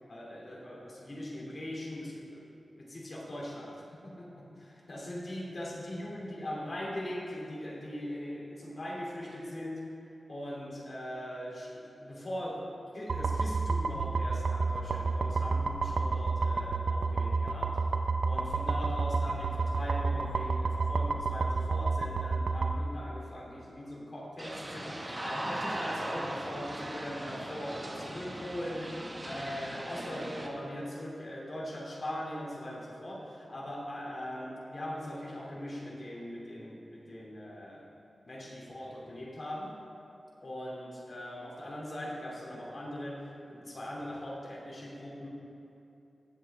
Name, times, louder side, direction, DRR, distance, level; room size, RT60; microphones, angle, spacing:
voice 1, 0.1-2.5 2.8-4.5 4.9-9.9 10.3-17.8 18.2-37.9 38.3-39.8 40.4-45.3, equal, 40° left, -4 dB, 2.5 m, -40 dB
sound 1, 13.1-22.8, right 4 dB, 70° right, 0.6 m, -30 dB
sound 2, 24.4-30.5, right 1 dB, 25° right, 1.2 m, -39 dB
18.0 x 7.8 x 3.5 m, 2.9 s
wide cardioid pair, 125°, 0 cm